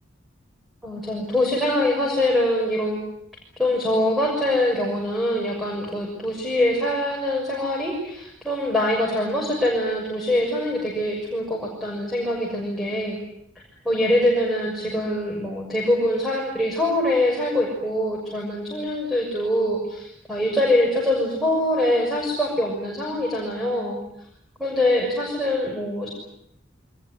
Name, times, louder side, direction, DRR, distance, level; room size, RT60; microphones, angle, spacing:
voice 1, 0.8-3.0 3.6-13.2 13.8-24.0 24.6-26.1, left 1 dB, ahead, -2 dB, 6.5 m, -23 dB
24.0 x 21.0 x 9.8 m, 0.78 s
head